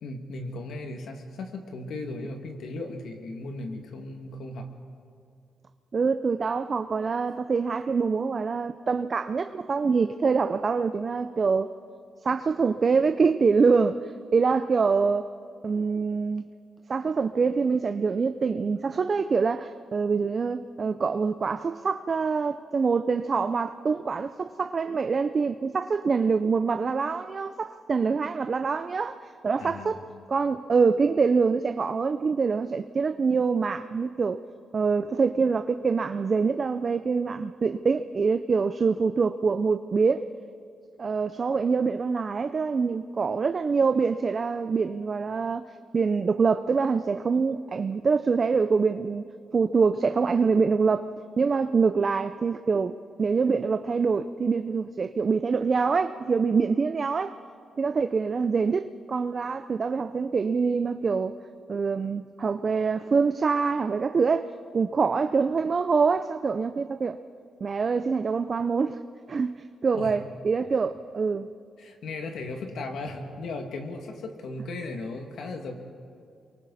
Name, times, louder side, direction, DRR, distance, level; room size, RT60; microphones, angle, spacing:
voice 1, 0.0-4.7 29.6-30.0 70.0-70.2 71.8-75.7, left 2 dB, 75° left, 4 dB, 2.2 m, -36 dB
voice 2, 5.9-11.7 12.2-15.3 15.6-16.5 16.9-29.2 29.4-30.0 30.3-34.4 34.7-40.2 41.0-45.7 45.9-49.2 49.5-51.1 51.4-57.4 57.8-61.3 61.7-67.2 67.6-69.0 69.3-69.6 69.8-71.5, right 5 dB, 40° right, 9 dB, 0.5 m, -25 dB
28.5 x 23.5 x 4.2 m, 2.4 s
cardioid pair, 115°, 0 cm